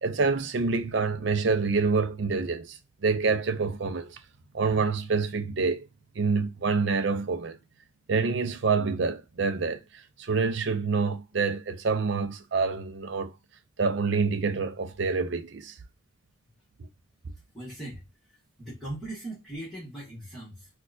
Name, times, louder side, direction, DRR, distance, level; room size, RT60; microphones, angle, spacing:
voice 1, 0.0-4.2 4.5-5.9 6.2-7.6 8.1-13.4 13.8-15.7, right 4 dB, 60° right, 0.5 m, -27 dB
voice 2, 17.5-18.0 18.6-20.7, right 1 dB, ahead, 1.3 m, -39 dB
4.1 x 2.4 x 2.5 m
head